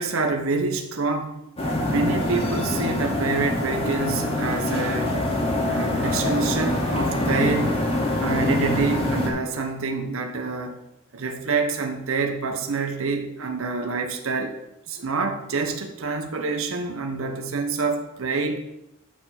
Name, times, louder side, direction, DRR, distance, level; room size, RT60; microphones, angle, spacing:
voice 1, 0.0-1.4 1.9-5.2 5.6-7.8 8.2-10.8 11.1-14.6 14.9-18.6, right 4 dB, 70° right, 5 dB, 0.8 m, -27 dB
sound 1, 1.6-9.3, left 1 dB, 25° left, 1.6 m, -24 dB
8.8 x 4.4 x 5.8 m, 0.87 s
head